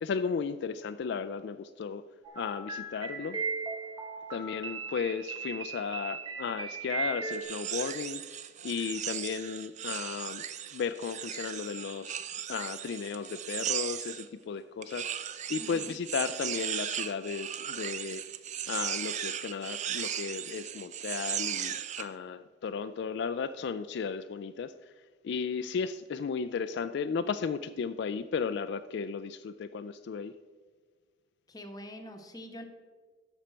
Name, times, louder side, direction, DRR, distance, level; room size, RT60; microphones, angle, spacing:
voice 1, 0.0-2.0 2.3-3.4 4.3-10.4 10.7-12.2 12.5-15.1 15.5-18.2 18.7-24.7 25.2-30.3, left 6 dB, 65° left, 11 dB, 0.3 m, -35 dB
sound 1, 2.2-7.4, right 4 dB, 25° right, 1.3 m, -37 dB
sound 2, 7.3-14.3 14.8-22.1, right 9 dB, 40° right, 0.4 m, -37 dB
voice 2, 15.6-16.0 31.5-32.6, equal, 20° left, 4 dB, 1.0 m, -44 dB
11.0 x 6.9 x 4.4 m, 1.5 s
head